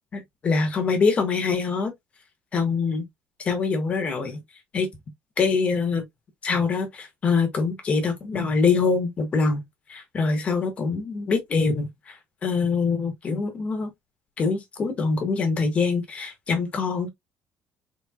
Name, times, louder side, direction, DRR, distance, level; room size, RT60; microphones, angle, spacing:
voice 1, 0.1-1.9 2.5-3.0 3.4-4.4 4.7-4.9 5.4-6.0 6.4-9.6 9.9-13.9 14.4-17.1, left 4 dB, 30° left, 1.3 m, -24 dB
4.2 x 3.4 x 2.3 m
cardioid pair, 175°, 5 cm